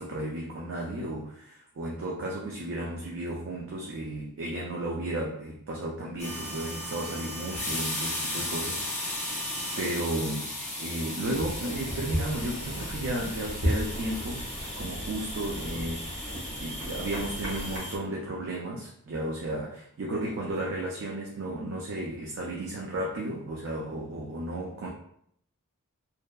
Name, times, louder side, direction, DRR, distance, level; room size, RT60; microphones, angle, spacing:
voice 1, 0.0-9.5 9.8-14.5 14.8-24.9, right 1 dB, 55° right, -2 dB, 0.4 m, -34 dB
sound 1, 6.2-18.0, left 1 dB, 30° left, 0.5 m, -36 dB
sound 2, 11.2-17.8, equal, 90° right, 1.1 m, -35 dB
2.6 x 2.2 x 2.2 m, 0.69 s
head